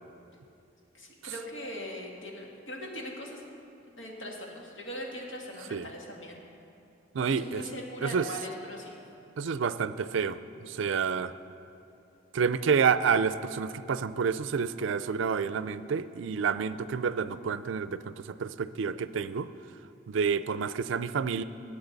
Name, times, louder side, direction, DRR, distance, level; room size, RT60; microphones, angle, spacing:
voice 1, 0.9-3.4 3.9-6.4 7.2-9.0, equal, 80° left, -2 dB, 2.2 m, -40 dB
voice 2, 7.1-7.6 8.0-8.3 9.4-10.4 10.6-11.3 12.3-19.5 20.1-21.4, right 6 dB, 75° right, 14 dB, 0.4 m, -29 dB
21.5 x 8.6 x 4.0 m, 2.6 s
head